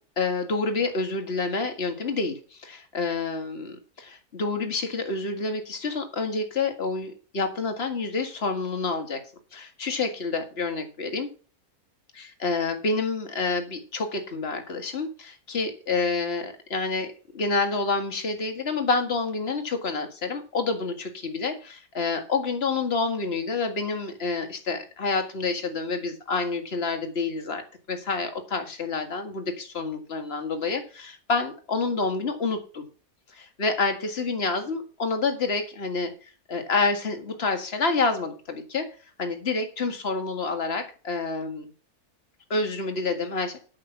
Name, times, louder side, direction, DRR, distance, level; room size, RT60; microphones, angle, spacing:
voice 1, 0.2-9.2 9.5-11.3 12.2-32.8 33.3-41.7 42.5-43.6, left 4 dB, 40° left, 6 dB, 2.1 m, -28 dB
8.8 x 8.0 x 5.9 m, 0.36 s
omnidirectional pair, 1.6 m